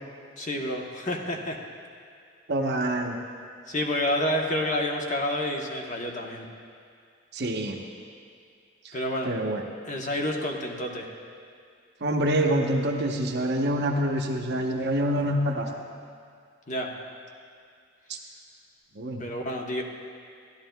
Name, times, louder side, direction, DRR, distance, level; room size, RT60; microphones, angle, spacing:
voice 1, 0.4-1.6 3.7-6.5 8.9-9.3 9.8-11.1 16.7-16.9 19.2-19.8, left 1 dB, 40° left, 1 dB, 0.9 m, -29 dB
voice 2, 2.5-3.2 7.3-7.8 8.8-9.0 9.2-9.6 12.0-15.7 18.1-18.2 18.9-19.2, right 1 dB, 55° right, 2 dB, 0.8 m, -26 dB
14.5 x 11.5 x 2.2 m, 2.2 s
head